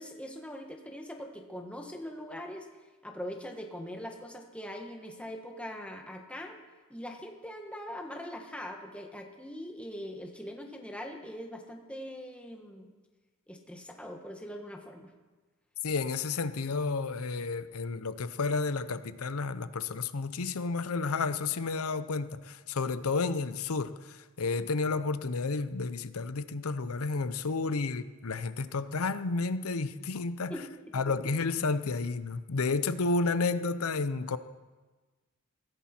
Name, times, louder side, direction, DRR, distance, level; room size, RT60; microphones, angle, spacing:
voice 1, 0.0-2.7 3.0-6.5 6.9-12.9 13.5-15.1 30.5-30.7 31.2-31.3, equal, 5° left, 2 dB, 1.4 m, -42 dB
voice 2, 15.8-30.5 30.9-34.4, left 4 dB, 90° left, 13 dB, 0.7 m, -31 dB
21.0 x 15.5 x 4.4 m, 1.3 s
head